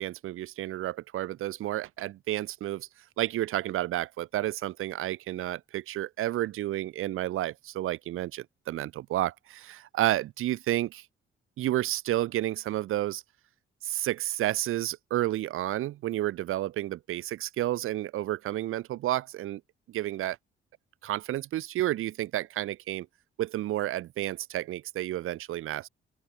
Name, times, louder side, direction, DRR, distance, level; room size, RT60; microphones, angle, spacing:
voice 1, 0.0-2.9 3.2-11.0 11.6-13.2 13.8-19.6 19.9-20.4 21.0-23.1 23.4-25.9, right 14 dB, 85° right, 3.0 m, -31 dB
open air
cardioid pair, 90°, 21 cm